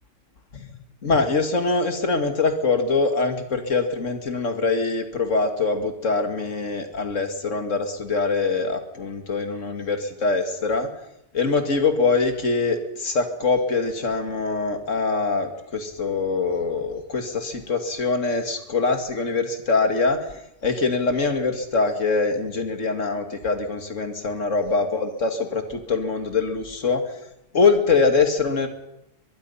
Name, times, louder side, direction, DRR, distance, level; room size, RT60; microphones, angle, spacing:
voice 1, 1.0-10.9 11.3-20.2 20.6-27.0 27.5-28.7, left 4 dB, 70° left, 7 dB, 2.5 m, -23 dB
23.5 x 21.5 x 5.7 m, 0.84 s
omnidirectional pair, 1.4 m